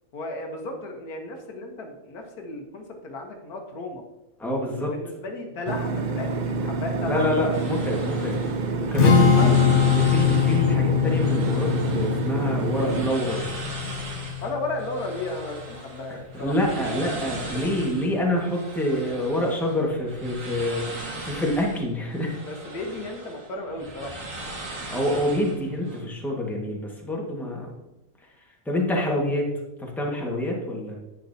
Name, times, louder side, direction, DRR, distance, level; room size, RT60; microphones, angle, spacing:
voice 1, 0.1-4.0 4.5-7.4 9.3-9.6 14.4-17.2 17.5-17.7 22.4-24.2, left 2 dB, 80° left, 3 dB, 1.7 m, -34 dB
voice 2, 4.4-4.9 7.1-8.4 8.8-13.4 16.4-22.4 24.9-27.7 28.6-29.5 29.8-30.9, left 1 dB, ahead, -2 dB, 1.4 m, -26 dB
sound 1, 5.7-13.1, right 3 dB, 80° right, 0.4 m, -28 dB
sound 2, 7.5-26.0, right 2 dB, 60° right, 2.1 m, -39 dB
Strum, 9.0-15.2, left 7 dB, 50° left, 1.3 m, -22 dB
10.5 x 8.3 x 2.8 m, 0.98 s
omnidirectional pair, 1.6 m